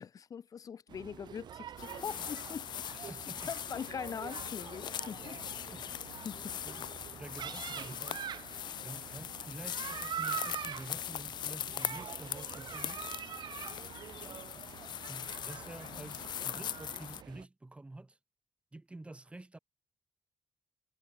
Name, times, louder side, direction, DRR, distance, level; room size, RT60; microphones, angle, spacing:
voice 1, 0.0-3.2 3.5-5.4 6.2-6.6, left 7 dB, 55° left, 0.7 m, -42 dB
sound 1, 0.9-17.5, right 9 dB, 80° right, 1.8 m, -45 dB
sound 2, 1.8-17.2, left 10 dB, 85° left, 1.0 m, -41 dB
voice 2, 3.1-3.5 5.6-5.9 6.6-8.2 8.8-13.0 15.1-18.2 18.7-19.6, right 2 dB, 15° right, 1.6 m, -49 dB
cardioid pair, 115°, 7 cm